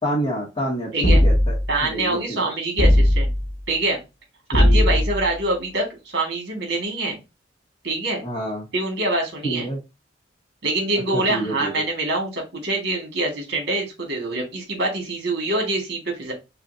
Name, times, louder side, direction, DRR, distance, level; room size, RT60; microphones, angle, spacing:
voice 1, 0.0-2.5 4.5-5.0 8.2-8.7 9.4-9.8 11.1-11.7, right 1 dB, 30° left, -5 dB, 1.0 m, -28 dB
sound 1, 1.0-1.8 2.8-3.5 4.5-5.3, left 1 dB, 60° left, 0.9 m, -17 dB
voice 2, 1.7-3.3 3.7-4.0 4.5-5.9 6.1-7.2 7.8-8.2 8.7-9.7 10.6-16.3, right 2 dB, 60° right, 1 dB, 1.8 m, -25 dB
5.4 x 2.3 x 2.7 m, 0.25 s
head